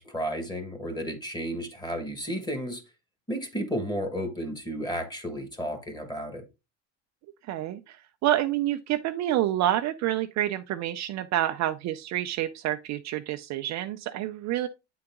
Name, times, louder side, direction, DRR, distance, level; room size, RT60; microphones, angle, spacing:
voice 1, 0.0-2.8 3.3-6.4, equal, 10° left, 1.6 m, -33 dB
voice 2, 7.5-14.7, right 13 dB, 45° right, 0.5 m, -28 dB
8.5 x 3.9 x 3.5 m
supercardioid pair, 115°, 38 cm